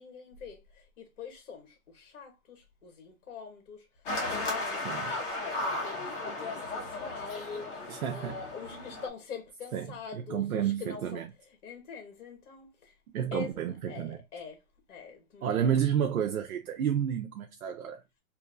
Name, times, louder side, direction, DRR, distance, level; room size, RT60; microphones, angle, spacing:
voice 1, 0.0-3.9 4.3-12.9 13.3-13.5 13.9-14.6 14.9-15.7, left 5 dB, 60° left, 1.2 m, -44 dB
sound 1, 4.1-9.1, left 2 dB, 35° left, 1.0 m, -35 dB
voice 2, 7.9-8.4 9.7-11.3 13.1-14.2 15.4-18.0, right 9 dB, 75° right, 0.6 m, -30 dB
2.9 x 2.6 x 2.5 m
hypercardioid pair, 155°, 43 cm